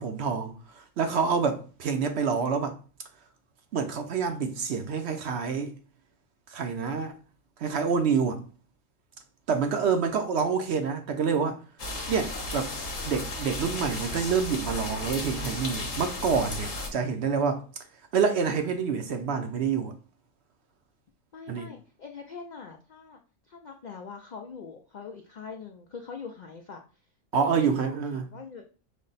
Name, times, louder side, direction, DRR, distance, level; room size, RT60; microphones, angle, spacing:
voice 1, 0.0-2.7 3.7-5.7 6.5-7.1 7.6-8.4 9.5-11.6 12.1-12.7 13.0-17.6 18.1-19.9 21.5-21.7 27.3-28.3, right 6 dB, 60° right, 0.8 m, -27 dB
sound 1, 11.8-16.9, left 2 dB, 40° left, 1.1 m, -34 dB
voice 2, 21.3-23.2 23.5-26.8 27.3-28.7, left 5 dB, 75° left, 0.4 m, -43 dB
5.2 x 2.1 x 3.9 m
omnidirectional pair, 1.4 m